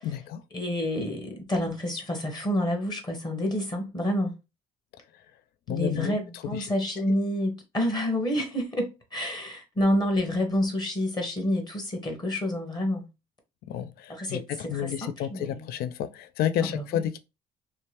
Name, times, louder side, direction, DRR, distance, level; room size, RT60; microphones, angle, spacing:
voice 1, 0.0-0.4 5.7-6.7 13.7-17.2, left 10 dB, 65° left, 0.4 m, -31 dB
voice 2, 0.5-4.3 5.7-13.0 14.1-14.4 14.7-15.7 16.6-17.0, left 1 dB, 25° left, 0.9 m, -28 dB
2.8 x 2.1 x 3.1 m
cardioid pair, 110°, 17 cm